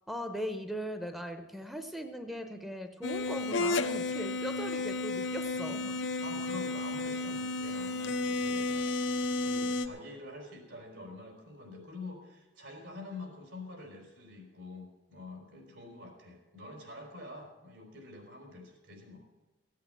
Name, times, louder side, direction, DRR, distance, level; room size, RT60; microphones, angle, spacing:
voice 1, 0.1-6.0, equal, ahead, 7 dB, 0.7 m, -39 dB
sound 1, 3.0-9.9, left 2 dB, 85° left, 0.8 m, -32 dB
voice 2, 6.2-8.9 9.4-19.3, left 2 dB, 80° right, 2 dB, 4.3 m, -46 dB
15.0 x 8.4 x 7.9 m, 1.1 s
head